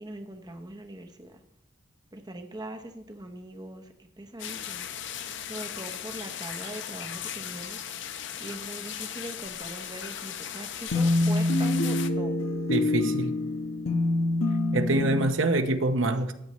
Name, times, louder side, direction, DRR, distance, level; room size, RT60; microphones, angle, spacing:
voice 1, 0.0-1.4 2.1-4.8 5.5-7.8 8.4-12.4, right 1 dB, 20° right, 5 dB, 0.8 m, -41 dB
sound 1, 4.4-12.1, left 9 dB, 60° left, 0.7 m, -37 dB
sound 2, 10.9-15.2, left 2 dB, 85° left, 1.0 m, -26 dB
voice 2, 12.7-13.3 14.7-16.3, right 2 dB, 70° right, 7 dB, 0.9 m, -25 dB
14.0 x 9.4 x 3.1 m, 0.79 s
head